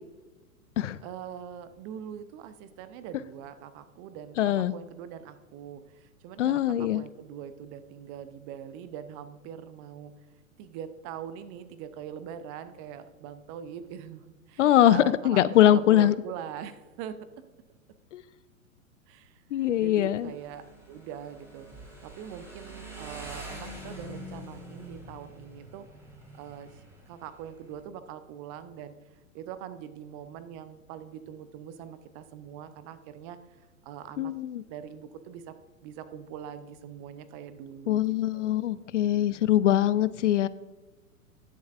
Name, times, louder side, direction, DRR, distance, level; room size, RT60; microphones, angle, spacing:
voice 1, 1.0-10.1 10.6-17.2 19.1-21.7 22.0-25.9 26.3-29.0 29.3-33.6 33.8-34.3 34.7-35.5 35.8-38.0 38.3-38.6, right 9 dB, 25° right, 12 dB, 0.5 m, -42 dB
voice 2, 4.4-4.7 6.4-7.0 14.6-16.1 18.1-18.2 19.5-20.3 34.2-34.6 37.9-40.5, left 12 dB, 60° left, 17 dB, 0.5 m, -22 dB
Motorcycle, 19.6-27.8, right 1 dB, 5° right, 2.7 m, -45 dB
19.0 x 7.1 x 2.4 m, 1.2 s
figure-of-eight pair, 105°, 42 cm